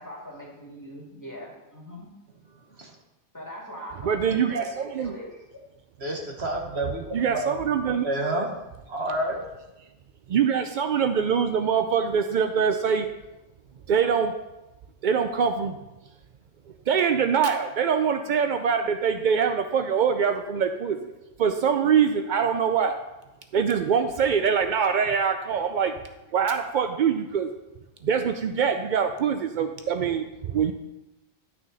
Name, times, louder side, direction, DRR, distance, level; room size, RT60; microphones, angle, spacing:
voice 1, 0.0-2.1 3.3-5.3, equal, 15° left, -4 dB, 2.4 m, -41 dB
voice 2, 4.0-5.1 7.1-8.1 10.3-13.1 13.9-14.3 15.0-15.8 16.9-21.1 21.4-23.0 23.5-25.9 26.3-27.5 28.0-30.7, right 7 dB, 75° right, 7 dB, 0.4 m, -24 dB
voice 3, 6.0-7.0 7.3-7.4 7.8-8.5 8.9-9.4, right 1 dB, 55° right, 0 dB, 1.4 m, -29 dB
11.0 x 6.3 x 4.0 m, 0.99 s
omnidirectional pair, 1.4 m